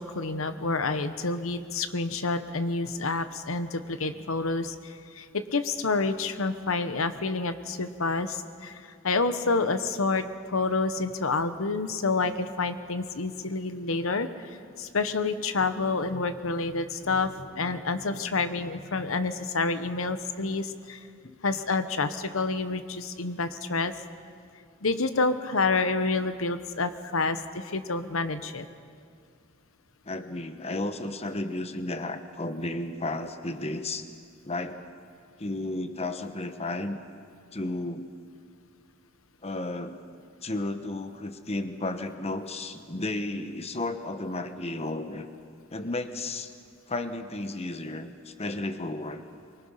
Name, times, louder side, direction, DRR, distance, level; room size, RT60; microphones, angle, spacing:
voice 1, 0.0-14.5 14.8-21.0 21.4-23.9 24.8-28.6, left 3 dB, 85° left, 10 dB, 1.1 m, -28 dB
voice 2, 30.1-34.0 34.4-34.9 35.4-37.0 37.5-38.1 39.4-40.0 40.4-45.3 45.7-46.5 46.9-49.2, left 2 dB, 30° left, 8 dB, 1.1 m, -33 dB
24.5 x 23.5 x 5.7 m, 2.2 s
head